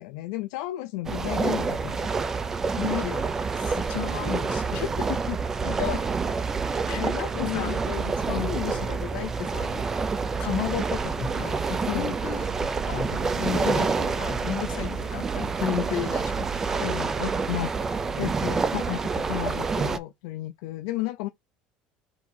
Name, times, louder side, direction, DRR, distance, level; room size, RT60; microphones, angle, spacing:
voice 1, 0.0-2.1 4.8-5.1 5.6-6.0 6.7-8.6 11.9-12.2 13.6-13.8 14.1-14.2 14.7-15.0 16.8-17.7 18.2-21.3, left 17 dB, 80° left, 0.3 m, -33 dB
sound 1, 1.0-20.0, right 4 dB, 15° right, 0.3 m, -28 dB
voice 2, 2.8-4.8 5.1-5.4 6.9-7.8 8.3-9.8 10.4-16.8, left 9 dB, 55° left, 1.2 m, -33 dB
4.4 x 2.7 x 4.1 m
cardioid pair, 170°, 3 cm